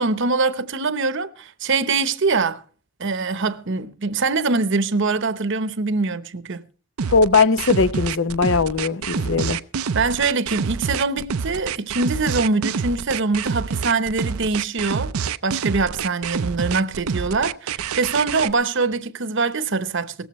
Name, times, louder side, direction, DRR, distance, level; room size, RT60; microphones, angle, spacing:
voice 1, 0.0-2.6 3.0-6.6 9.9-15.1 15.4-20.3, right 4 dB, 60° right, 0.9 m, -23 dB
sound 1, 7.0-18.5, right 6 dB, 85° right, 0.6 m, -27 dB
voice 2, 7.1-9.6, left 4 dB, 60° left, 0.8 m, -19 dB
18.0 x 14.5 x 3.1 m
head